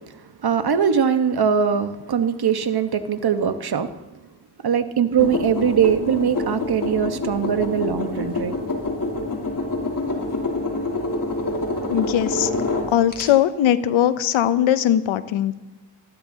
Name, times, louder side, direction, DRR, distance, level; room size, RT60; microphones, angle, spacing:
voice 1, 0.4-3.9 4.6-8.6, right 7 dB, 55° right, 9 dB, 1.1 m, -21 dB
sound 1, 5.2-13.2, left 2 dB, 45° left, 3.0 m, -27 dB
voice 2, 11.9-12.5 12.9-15.5, left 11 dB, 85° left, 14 dB, 0.7 m, -20 dB
19.5 x 14.0 x 2.7 m, 1.1 s
supercardioid pair, 45°, 46 cm